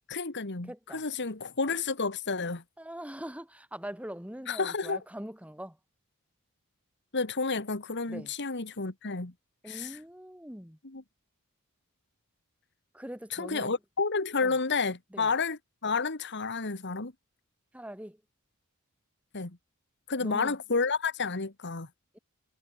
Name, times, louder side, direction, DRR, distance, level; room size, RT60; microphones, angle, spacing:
voice 1, 0.1-2.6 4.5-5.0 7.1-9.3 9.7-10.0 10.9-11.0 13.3-17.1 19.3-19.5 20.1-21.9, left 4 dB, 55° left, 1.9 m, -31 dB
voice 2, 0.6-1.1 2.8-5.8 8.1-8.3 9.6-10.8 12.9-13.8 14.4-14.5 15.1-15.3 17.7-18.2 20.2-20.6 22.1-22.2, equal, 5° right, 6.4 m, -42 dB
head